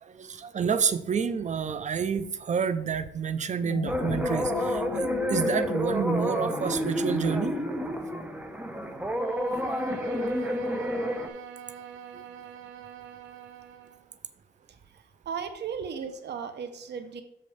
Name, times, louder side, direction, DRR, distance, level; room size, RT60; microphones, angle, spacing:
voice 1, 0.0-7.6 12.1-12.2, right 6 dB, 35° right, 13 dB, 0.6 m, -29 dB
sound 1, 3.5-8.1, left 8 dB, 35° left, 0.5 m, -37 dB
sound 2, 3.9-11.3, equal, 5° right, 0.8 m, -30 dB
Bowed string instrument, 9.1-14.1, right 8 dB, 85° right, 0.8 m, -45 dB
voice 2, 15.2-17.2, right 6 dB, 60° right, 9 dB, 1.0 m, -35 dB
6.6 x 5.4 x 5.0 m, 0.80 s
cardioid pair, 90°, 20 cm